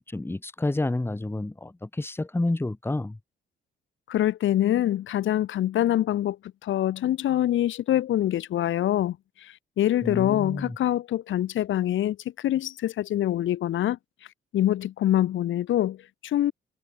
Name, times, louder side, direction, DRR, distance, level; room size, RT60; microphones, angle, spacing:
voice 1, 0.0-3.2 10.0-10.8, left 2 dB, 10° left, 1.8 m, -29 dB
voice 2, 4.1-6.4 6.6-9.2 9.4-14.0 14.5-16.5, left 12 dB, 75° left, 3.3 m, -25 dB
cardioid pair, 90°, 20 cm